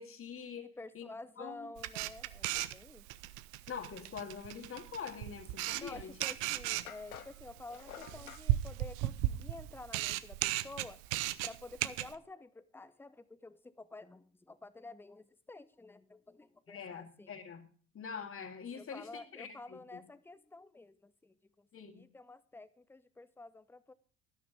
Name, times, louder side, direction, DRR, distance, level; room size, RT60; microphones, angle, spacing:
voice 1, 0.0-0.7 0.9-1.1 1.4-1.7 3.7-6.1 16.7-17.6 17.9-20.0 21.7-22.0, left 6 dB, 30° left, 2.3 m, -44 dB
voice 2, 0.6-3.1 5.8-11.0 11.4-17.3 18.7-23.9, left 2 dB, 5° left, 0.8 m, -50 dB
Camera, 1.8-12.1, right 15 dB, 55° right, 0.8 m, -36 dB
sound 1, 6.0-6.1 6.9-8.5, left 10 dB, 80° left, 1.0 m, -50 dB
12.0 x 11.5 x 3.5 m
figure-of-eight pair, 65°, 43 cm